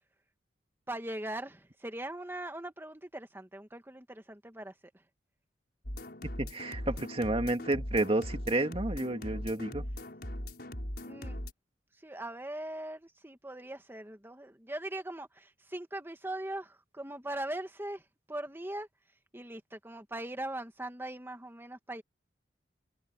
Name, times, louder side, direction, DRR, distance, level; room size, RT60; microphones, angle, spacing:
voice 1, 0.9-5.0 11.1-11.4 12.0-18.0 18.3-18.9 19.3-22.0, right 1 dB, 15° right, 1.7 m, -40 dB
sound 1, 5.8-11.5, left 1 dB, 60° left, 6.2 m, -39 dB
voice 2, 6.2-9.8, right 2 dB, 30° right, 2.2 m, -31 dB
head